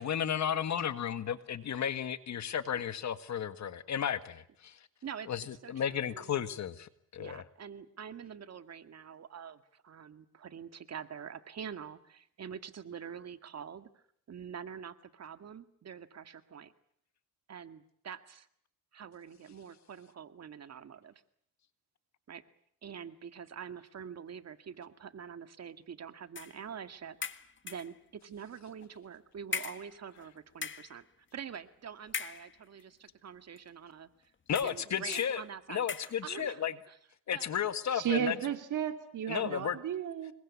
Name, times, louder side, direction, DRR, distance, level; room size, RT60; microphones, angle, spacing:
voice 1, 0.0-4.8 5.3-7.4 34.5-35.4 35.7-36.7 37.3-38.3 39.3-39.8, left 8 dB, 60° left, 11 dB, 1.8 m, -33 dB
voice 2, 5.6-6.4 7.2-16.7 17.5-18.5 18.9-21.2 22.3-22.4 22.8-27.2 27.6-34.1 34.6-37.0 37.3-37.5, right 7 dB, 55° right, 10 dB, 2.0 m, -46 dB
sound 1, 26.4-26.6 27.2-28.0 28.8-28.9 29.5-30.3 30.5-31.0 32.1-32.8 33.6-33.7 34.5-34.9 35.1-35.4 35.9-36.2, left 6 dB, 35° left, 1.6 m, -40 dB
voice 3, 37.9-40.3, right 10 dB, 70° right, 7 dB, 2.9 m, -33 dB
26.5 x 22.5 x 8.5 m, 0.67 s
cardioid pair, 85°, 32 cm